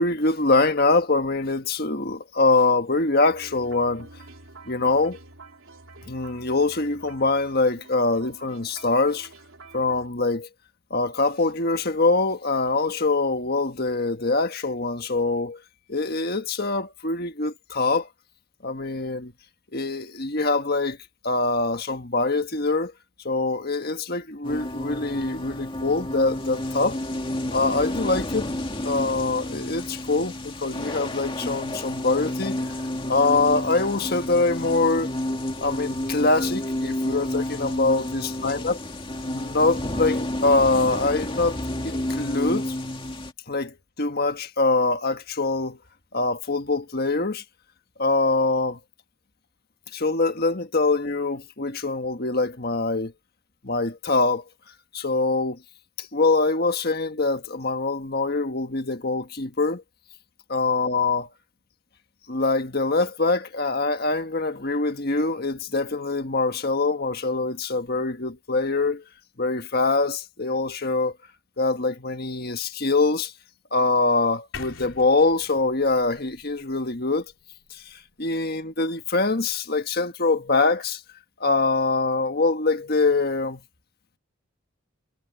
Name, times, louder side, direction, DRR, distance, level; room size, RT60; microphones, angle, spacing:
voice 1, 0.0-4.1 4.7-5.2 6.0-9.3 9.7-10.5 10.9-15.6 15.9-18.1 18.6-19.3 19.7-21.0 21.2-22.9 23.2-27.0 27.5-28.5 28.8-32.6 33.1-35.1 35.6-38.8 39.3-41.6 41.8-42.7 43.5-45.8 46.1-47.4 48.0-48.8 49.9-53.1 53.6-54.4 54.9-55.6 56.0-59.8 60.5-61.3 62.3-69.0 69.4-71.1 71.6-73.3 73.7-77.2 77.7-81.0 81.4-83.6, left 3 dB, 45° left, 1.6 m, -24 dB
sound 1, 3.3-10.1, right 3 dB, 75° right, 4.0 m, -47 dB
sound 2, 24.4-43.3, left 1 dB, 25° left, 2.1 m, -30 dB
sound 3, 74.5-78.5, left 4 dB, 70° left, 3.3 m, -44 dB
head